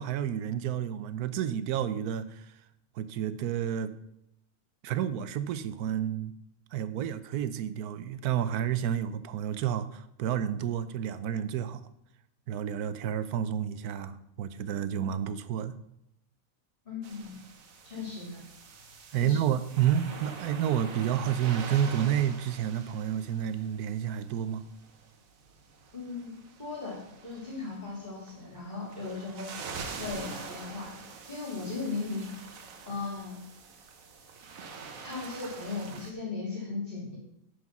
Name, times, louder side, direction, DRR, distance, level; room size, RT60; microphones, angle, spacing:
voice 1, 0.0-2.5 3.0-3.9 4.8-6.3 6.7-11.8 12.5-15.8 19.1-24.6, right 9 dB, 90° right, 13 dB, 1.1 m, -30 dB
voice 2, 16.8-17.3 17.8-18.4 19.1-19.5 25.9-27.0 27.2-29.5 30.0-30.9 31.3-32.3 32.9-33.4 35.0-37.2, left 4 dB, 35° left, -3 dB, 2.7 m, -37 dB
sound 1, 17.0-36.1, right 4 dB, 65° right, 1.4 m, -45 dB
9.5 x 4.9 x 5.9 m, 0.79 s
omnidirectional pair, 1.6 m